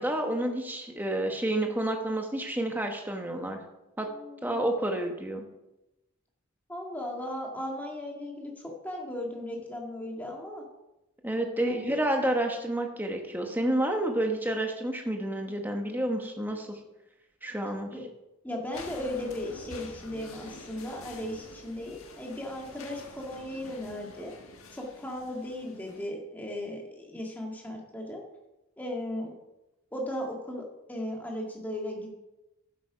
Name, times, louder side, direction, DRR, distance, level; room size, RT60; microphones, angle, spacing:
voice 1, 0.0-3.6 4.0-4.1 4.4-5.4 11.2-16.8 17.4-17.9, right 1 dB, 10° right, 3 dB, 1.1 m, -29 dB
voice 2, 4.1-4.6 6.7-10.6 11.7-11.9 17.9-18.1 18.4-24.3 24.7-28.2 28.8-29.3 29.9-32.1, left 1 dB, 10° left, -1 dB, 1.8 m, -36 dB
sound 1, 18.7-26.1, left 3 dB, 75° left, 1.5 m, -47 dB
11.0 x 8.5 x 5.0 m, 0.96 s
head